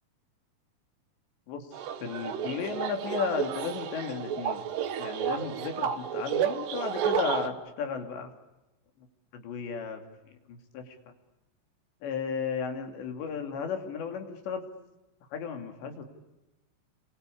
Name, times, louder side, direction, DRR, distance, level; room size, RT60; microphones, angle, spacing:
sound 1, 1.7-7.5, right 8 dB, 75° right, 3.6 m, -31 dB
voice 1, 2.0-4.6 5.0-8.3 9.3-10.0 10.5-11.1 12.0-14.6 15.3-16.0, left 6 dB, 75° left, 5 dB, 4.9 m, -34 dB
29.0 x 24.0 x 8.5 m, 1.0 s
omnidirectional pair, 5.1 m